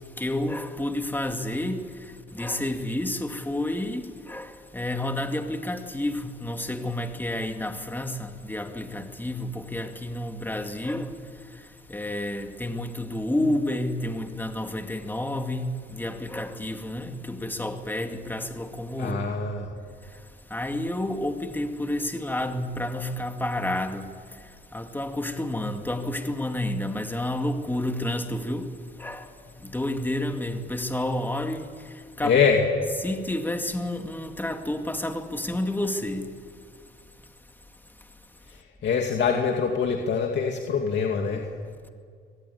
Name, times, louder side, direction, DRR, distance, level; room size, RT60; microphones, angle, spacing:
voice 1, 0.2-11.2 11.9-19.3 20.5-24.1 24.7-28.7 29.0-32.4 33.0-36.3, left 1 dB, 10° left, 2.3 m, -30 dB
voice 2, 19.0-19.7 32.2-32.6 38.5-41.5, left 6 dB, 65° left, 2.6 m, -24 dB
24.0 x 18.5 x 9.6 m
cardioid pair, 90°, 20 cm